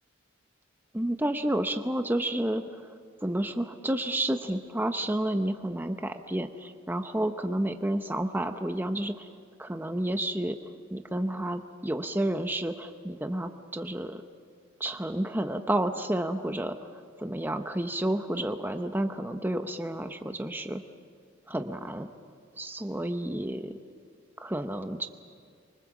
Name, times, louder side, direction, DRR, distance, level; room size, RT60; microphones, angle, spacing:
voice 1, 0.9-2.9 3.2-9.3 9.6-10.6 10.9-14.2 14.8-16.8 17.2-20.8 21.5-22.1 22.6-23.8 24.4-25.1, right 1 dB, 10° right, 7 dB, 0.7 m, -30 dB
26.0 x 24.0 x 7.2 m, 2.2 s
head